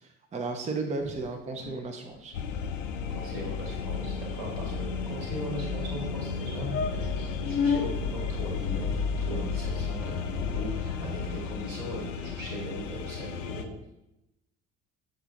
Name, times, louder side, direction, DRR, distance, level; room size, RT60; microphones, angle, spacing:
voice 1, 0.3-2.4, right 3 dB, 20° right, 4 dB, 0.6 m, -33 dB
sound 1, 1.0-1.8 2.1-2.3 2.6-2.8 3.0-3.1 3.3-3.6 4.2-5.3 5.9-6.0 6.4-6.5 6.7-7.9 8.7-9.7, left 6 dB, 35° left, 0.6 m, -34 dB
sound 2, 2.3-13.6, left 5 dB, 75° left, 0.6 m, -33 dB
voice 2, 3.1-13.7, equal, 75° right, -2 dB, 2.0 m, -39 dB
6.8 x 3.8 x 3.8 m, 0.90 s
figure-of-eight pair, 55°, 39 cm